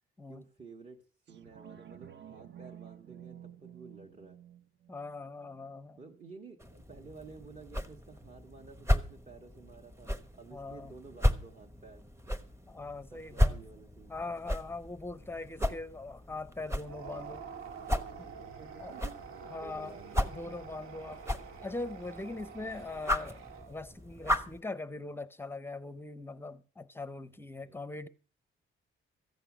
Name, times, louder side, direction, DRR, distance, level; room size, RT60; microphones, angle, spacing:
voice 1, 0.3-1.0 1.3-4.4 6.0-12.0 12.4-12.5 13.1-14.4 17.9-20.3 24.9-25.1 27.6-27.8, right 4 dB, 35° right, 1.6 m, -52 dB
sound 1, 1.3-6.3 6.7-6.8, right 10 dB, 60° right, 0.8 m, -52 dB
voice 2, 4.9-6.0 10.5-11.0 12.7-13.6 14.1-17.5 18.8-18.9 19.5-20.0 20.3-21.2 21.6-23.4 23.7-28.1, left 2 dB, 10° left, 0.6 m, -41 dB
sound 2, 6.6-24.6, left 1 dB, 10° right, 1.1 m, -35 dB
sound 3, 16.8-24.0, right 7 dB, 85° right, 2.0 m, -47 dB
14.0 x 9.0 x 6.1 m
wide cardioid pair, 155°, 21 cm